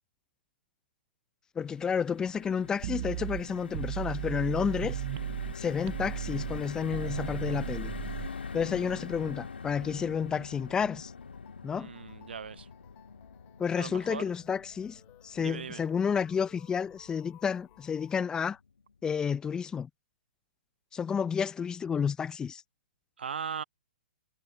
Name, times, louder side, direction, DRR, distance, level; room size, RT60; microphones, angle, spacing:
sound 1, 1.6-17.9 18.3-18.4 18.7-18.9, left 5 dB, 90° left, 2.0 m, -43 dB
voice 1, 1.6-5.0 5.6-7.9 8.5-11.1 11.6-11.9 13.6-18.6 19.0-19.9 20.9-22.6, left 7 dB, 15° left, 0.5 m, -31 dB
sound 2, 2.8-5.5 5.9-8.3, right 19 dB, 45° right, 0.5 m, -36 dB
sound 3, 9.7-18.2, left 21 dB, 30° left, 2.5 m, -60 dB
voice 2, 11.7-12.7 13.8-14.3 15.4-15.8 23.2-23.6, right 7 dB, 80° right, 0.8 m, -38 dB
hypercardioid pair, 135°, 6 cm